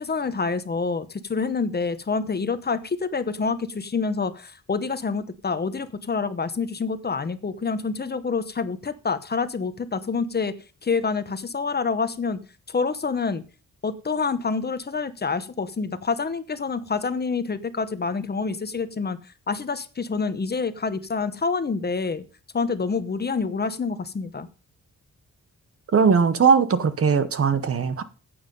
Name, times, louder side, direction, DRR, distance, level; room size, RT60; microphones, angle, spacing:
voice 1, 0.0-10.5 10.8-12.4 12.7-13.4 13.8-22.2 22.5-24.5, left 4 dB, 30° left, 0.9 m, -27 dB
voice 2, 25.9-28.0, right 6 dB, 45° right, 1.0 m, -19 dB
14.5 x 8.8 x 5.3 m
wide cardioid pair, 165°, 31 cm